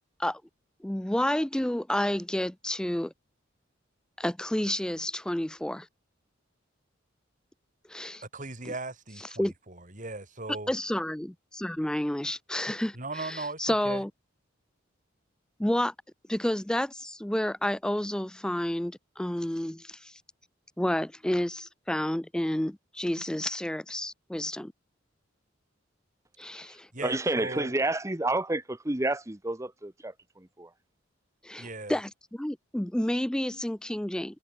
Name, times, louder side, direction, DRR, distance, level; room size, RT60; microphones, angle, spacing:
voice 1, 0.8-3.1 4.2-5.9 7.9-8.2 8.7-8.8 9.4-9.5 10.7-14.1 15.6-15.9 16.3-20.2 20.8-24.7 26.4-26.9 31.4-34.4, left 1 dB, 5° left, 0.3 m, -30 dB
voice 2, 8.3-10.7 12.9-14.0 26.9-27.7 31.6-32.0, right 2 dB, 40° right, 4.6 m, -38 dB
voice 3, 27.0-30.7, right 2 dB, 15° right, 1.0 m, -30 dB
head